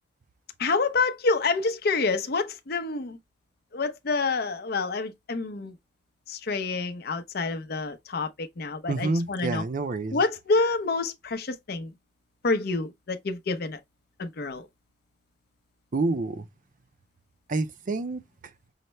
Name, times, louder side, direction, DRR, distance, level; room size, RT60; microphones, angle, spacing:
voice 1, 0.6-3.2 3.7-5.7 6.3-9.6 10.1-11.9 12.4-13.8 14.2-14.7, left 3 dB, 60° left, 0.6 m, -27 dB
voice 2, 8.9-10.2 15.9-16.5 17.5-18.5, right 3 dB, 45° right, 0.5 m, -28 dB
5.6 x 2.1 x 3.1 m
head